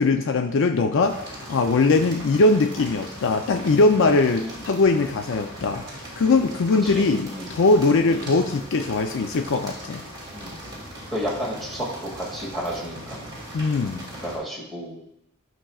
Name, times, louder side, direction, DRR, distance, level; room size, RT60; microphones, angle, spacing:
voice 1, 0.0-10.0 13.5-14.1, left 3 dB, 60° left, 6 dB, 0.5 m, -21 dB
sound 1, 1.0-14.4, equal, 20° right, 2.4 m, -39 dB
voice 2, 11.1-13.3 14.2-15.0, equal, ahead, -5 dB, 2.1 m, -32 dB
11.5 x 6.1 x 2.3 m, 0.82 s
head